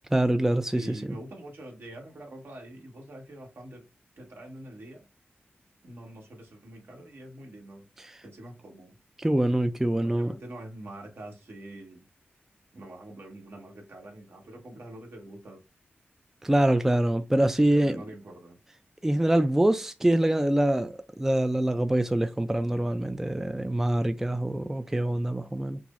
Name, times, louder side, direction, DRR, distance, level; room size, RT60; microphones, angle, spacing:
voice 1, 0.1-1.2 8.1-8.2 9.2-10.3 16.4-18.0 19.0-25.8, right 1 dB, 10° right, 0.3 m, -25 dB
voice 2, 0.7-3.9 4.2-5.0 5.8-7.8 8.2-9.0 10.0-12.1 12.7-15.6 17.6-18.6, right 1 dB, 70° right, 1.4 m, -45 dB
5.9 x 2.0 x 2.4 m
wide cardioid pair, 75°, 4 cm